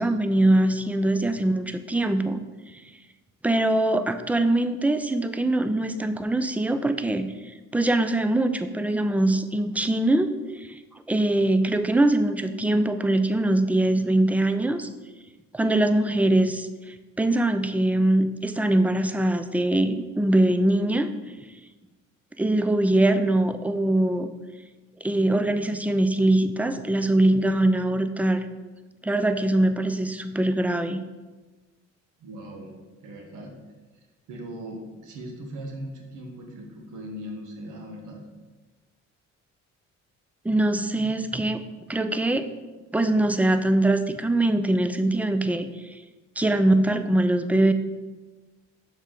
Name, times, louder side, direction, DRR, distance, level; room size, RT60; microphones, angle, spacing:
voice 1, 0.0-2.4 3.4-7.3 7.7-10.3 10.6-10.8 11.1-14.9 15.5-21.1 22.4-24.3 25.0-28.4 29.0-31.0 40.4-41.6 41.9-42.5 42.9-46.0 46.4-47.7, right 1 dB, 5° right, 9 dB, 0.4 m, -22 dB
voice 2, 32.2-32.7 33.0-33.5 34.3-38.2, equal, 90° right, 1 dB, 1.2 m, -39 dB
6.3 x 4.7 x 3.8 m, 1.2 s
cardioid pair, 90°, 30 cm